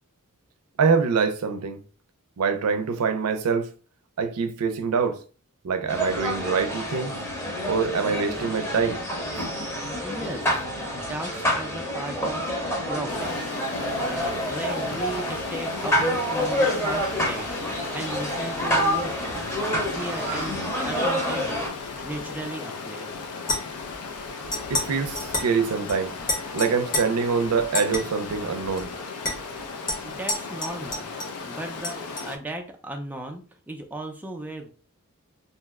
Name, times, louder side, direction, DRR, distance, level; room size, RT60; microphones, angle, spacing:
voice 1, 0.8-1.8 2.4-3.7 4.2-5.2 5.6-7.1 7.7-9.0 9.3-9.5 24.7-26.2 26.5-28.9, right 5 dB, 85° right, 0.5 m, -25 dB
sound 1, 5.9-21.7, equal, 10° left, 0.8 m, -28 dB
voice 2, 10.0-10.6 10.9-12.5 12.9-19.5 19.9-20.6 20.8-23.1 30.0-31.1 31.4-34.7, right 1 dB, 10° right, 0.3 m, -36 dB
Stream, 13.1-32.4, left 4 dB, 85° left, 0.5 m, -36 dB
sound 2, 23.4-23.9 24.5-24.9 25.2-25.5 25.9-26.0 26.3-27.0 27.7-28.0 28.8-28.9 29.2-29.4 29.9-31.4 31.8-32.3, left 2 dB, 40° left, 0.9 m, -29 dB
2.8 x 2.0 x 3.4 m
head